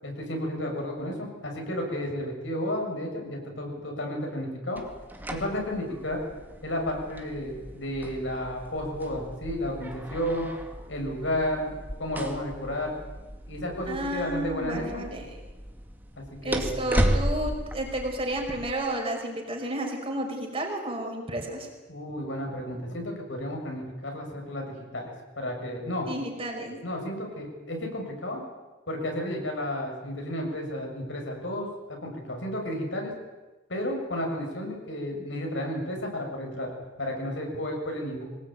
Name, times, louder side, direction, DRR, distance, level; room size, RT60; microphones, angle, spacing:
voice 1, 0.0-4.8 5.3-6.2 6.6-10.5 10.9-11.7 12.0-13.0 13.5-15.0 16.2-16.8 21.9-26.1 26.8-28.4 28.9-33.1 33.7-36.7 37.0-38.2, left 1 dB, 75° left, 1 dB, 7.0 m, -32 dB
sound 1, 4.8-18.7, equal, 10° right, 2.3 m, -35 dB
voice 2, 13.9-15.3 16.4-21.7 26.1-26.8, right 1 dB, 30° right, 1 dB, 5.4 m, -31 dB
23.5 x 19.0 x 9.3 m, 1.2 s
head